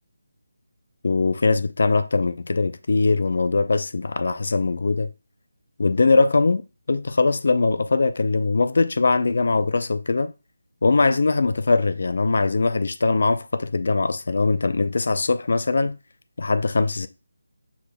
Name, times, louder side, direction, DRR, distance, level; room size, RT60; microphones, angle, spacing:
voice 1, 1.0-5.1 5.8-10.3 10.8-16.0 16.4-17.1, left 3 dB, 60° left, 0.5 m, -21 dB
6.2 x 3.5 x 2.2 m
figure-of-eight pair, 170°, 0 cm